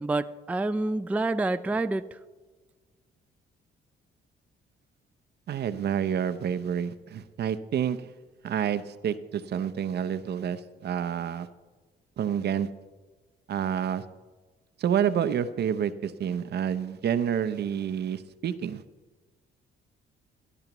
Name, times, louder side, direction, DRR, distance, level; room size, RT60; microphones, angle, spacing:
voice 1, 0.0-2.1, right 2 dB, 5° right, 11 dB, 0.3 m, -27 dB
voice 2, 5.5-8.1 8.4-11.5 12.2-12.7 13.5-14.0 14.8-18.8, right 8 dB, 55° right, 12 dB, 0.6 m, -28 dB
17.5 x 11.5 x 3.0 m, 1.3 s
cardioid pair, 90°, 20 cm